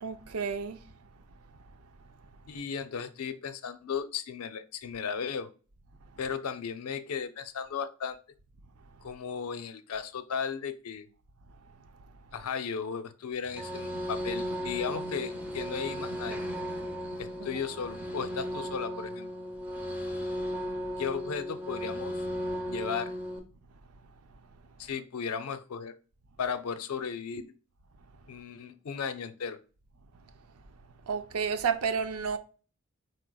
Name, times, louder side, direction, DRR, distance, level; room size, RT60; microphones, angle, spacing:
voice 1, 0.0-0.8 17.4-17.5 31.1-32.4, right 6 dB, 90° right, 0.6 m, -31 dB
voice 2, 2.5-5.5 6.2-8.2 9.0-11.1 12.3-16.4 17.2-19.3 21.0-22.1 22.7-23.1 24.8-25.9 26.4-27.5 28.3-29.6, left 6 dB, 85° left, 0.5 m, -35 dB
sound 1, 13.4-23.4, equal, 5° right, 0.7 m, -35 dB
4.7 x 4.5 x 2.3 m
head